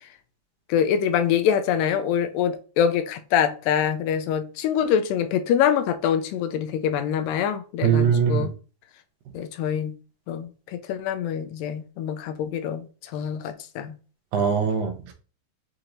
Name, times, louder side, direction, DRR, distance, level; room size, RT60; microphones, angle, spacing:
voice 1, 0.7-8.5 9.3-9.9 10.3-12.9 13.1-13.9, left 8 dB, 85° left, 2.2 m, -25 dB
voice 2, 7.8-8.5 14.3-15.1, right 7 dB, 85° right, 2.4 m, -21 dB
6.4 x 3.0 x 2.5 m
omnidirectional pair, 3.8 m